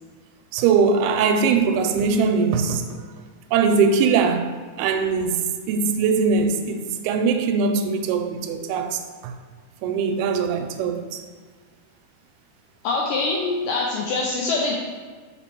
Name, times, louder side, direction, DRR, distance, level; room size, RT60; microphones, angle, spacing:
voice 1, 0.5-3.1 3.5-4.5 4.8-9.3 9.8-11.2, right 5 dB, 85° right, 2.4 m, -21 dB
voice 2, 12.8-14.8, left 3 dB, 85° left, 1.9 m, -24 dB
5.2 x 4.4 x 4.4 m
omnidirectional pair, 4.4 m